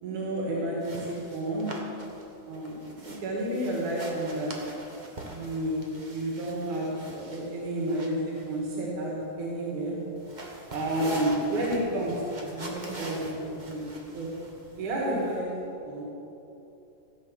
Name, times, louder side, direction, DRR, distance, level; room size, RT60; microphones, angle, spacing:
voice 1, 0.0-1.7 2.5-4.6 5.2-6.9 7.1-10.0 10.7-14.3 14.8-15.5 15.9-16.0, right 1 dB, 85° right, -4 dB, 3.5 m, -31 dB
sound 1, 0.8-15.4, right 1 dB, 40° right, 0.6 m, -43 dB
15.5 x 8.6 x 6.5 m, 3.0 s
omnidirectional pair, 3.4 m